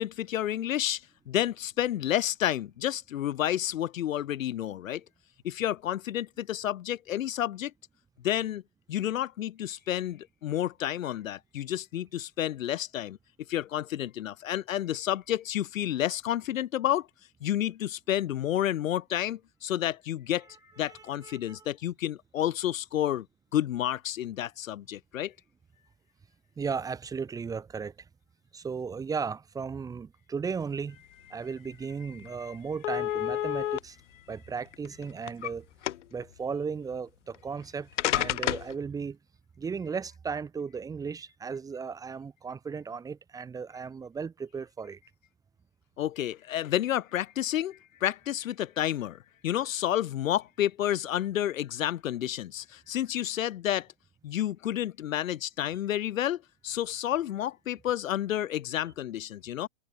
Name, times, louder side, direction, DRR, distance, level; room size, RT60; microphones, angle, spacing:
voice 1, 0.0-5.0 5.4-7.7 8.2-8.6 8.9-13.2 13.5-17.1 17.4-20.5 20.8-23.2 23.5-25.3 32.4-32.6 46.0-53.9 54.2-59.7, left 12 dB, 85° left, 0.8 m, -30 dB
voice 2, 20.8-21.7 26.6-28.1 28.5-31.0 31.3-34.0 34.3-35.7 36.1-39.2 39.6-45.0, right 5 dB, 10° right, 1.4 m, -36 dB
sound 1, 31.7-31.8 32.2-32.3 32.8-33.8 34.7-35.5 35.8-36.2 37.3-37.4 38.0-38.7, left 12 dB, 65° left, 1.8 m, -29 dB
hypercardioid pair, 150°, 39 cm